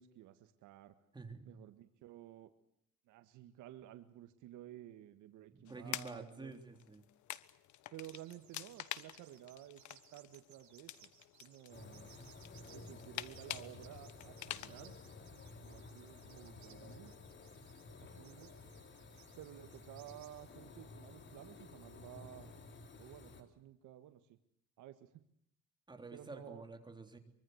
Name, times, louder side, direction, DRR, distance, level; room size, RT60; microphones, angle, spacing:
voice 1, 0.0-0.9 1.5-2.5 3.1-6.6 7.9-11.1 11.4-12.1 12.7-15.0 15.6-17.1 18.0-18.5 19.4-22.5 23.0-24.4 24.8-25.2 26.1-26.6, right 13 dB, 85° right, 9 dB, 1.8 m, -54 dB
voice 2, 1.1-1.6 5.5-7.0 25.9-27.2, right 3 dB, 15° right, 6 dB, 3.5 m, -49 dB
sound 1, 5.7-14.7, left 13 dB, 70° left, 1.3 m, -48 dB
sound 2, 8.0-20.3, right 11 dB, 70° right, 7.0 m, -64 dB
sound 3, 11.7-23.4, left 3 dB, 40° left, 3.7 m, -54 dB
24.5 x 24.5 x 8.1 m, 0.71 s
cardioid pair, 135°, 30 cm